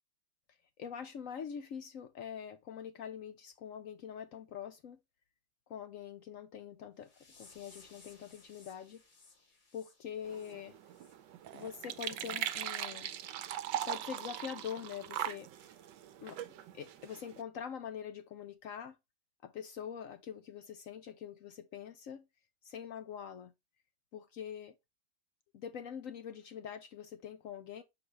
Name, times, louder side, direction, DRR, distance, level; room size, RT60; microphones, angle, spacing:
voice 1, 0.8-5.0 5.7-7.1 7.4-9.0 9.7-10.8 11.5-13.1 13.7-15.8 16.2-16.4 16.7-19.0 19.4-22.2 22.6-23.5 24.1-24.7 25.5-27.8, left 8 dB, 70° left, 0.8 m, -44 dB
sound 1, 7.0-11.7 12.1-12.3 12.8-12.9 13.4-13.5 14.0-14.1, left 3 dB, 30° left, 1.1 m, -61 dB
sound 2, 10.2-17.4, right 11 dB, 75° right, 1.2 m, -40 dB
6.5 x 4.8 x 3.2 m
omnidirectional pair, 2.0 m